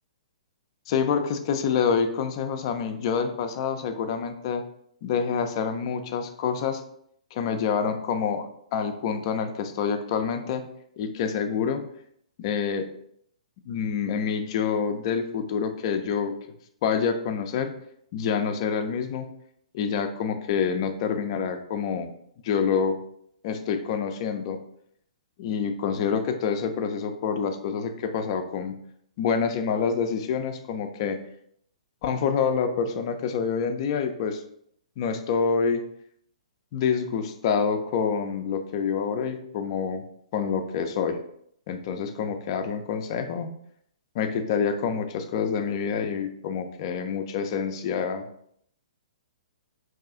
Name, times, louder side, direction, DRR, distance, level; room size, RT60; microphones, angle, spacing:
voice 1, 0.9-4.6 5.0-6.8 7.3-10.7 11.0-11.8 12.4-12.9 13.7-16.3 16.8-17.7 18.1-19.3 19.7-22.1 22.4-23.0 23.4-24.6 25.4-28.8 29.2-31.2 32.0-34.4 35.0-35.8 36.7-40.0 40.3-41.2 41.7-43.5 44.1-48.2, left 6 dB, 45° left, 7 dB, 0.4 m, -27 dB
2.7 x 2.3 x 3.6 m, 0.69 s
figure-of-eight pair, 120°, 4 cm